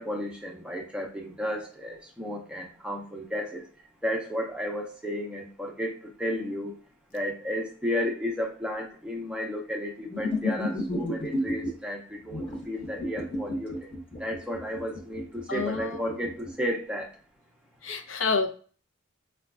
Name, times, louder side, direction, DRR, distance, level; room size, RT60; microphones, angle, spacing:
voice 1, 0.0-3.7 4.0-6.8 7.1-13.9 14.2-17.1, equal, 5° right, 0 dB, 0.5 m, -33 dB
sound 1, 10.1-11.7 12.3-16.5, left 1 dB, 25° left, 0.9 m, -32 dB
voice 2, 15.5-16.0 17.8-18.5, left 4 dB, 75° left, 4 dB, 0.6 m, -28 dB
4.9 x 2.2 x 2.4 m, 0.42 s
head